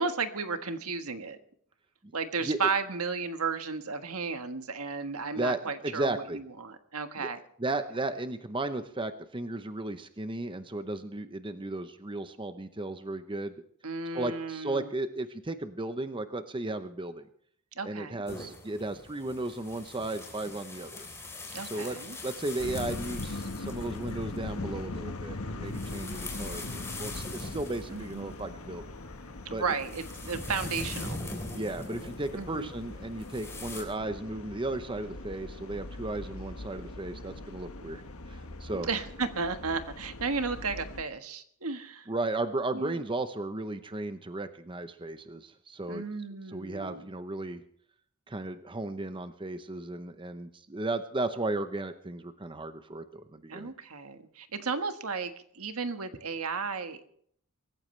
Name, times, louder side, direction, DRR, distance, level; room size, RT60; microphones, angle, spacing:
voice 1, 0.0-1.4 2.1-7.4 13.8-14.9 17.7-18.2 21.5-22.2 27.9-28.3 29.4-31.2 32.4-32.7 38.7-42.1 42.7-43.0 45.9-47.1 53.5-57.0, right 4 dB, 75° right, 8 dB, 1.5 m, -34 dB
voice 2, 5.3-6.4 7.2-7.3 7.6-13.6 14.1-17.3 17.8-21.1 21.7-22.0 22.2-28.8 29.5-29.6 31.5-38.9 42.1-46.0 46.5-47.6 48.3-53.7, right 2 dB, 20° right, 9 dB, 0.8 m, -35 dB
sound 1, 18.3-33.8, left 2 dB, 10° left, 3.9 m, -43 dB
sound 2, 22.6-41.0, left 2 dB, 70° left, 1.3 m, -41 dB
25.0 x 14.5 x 3.3 m, 0.64 s
head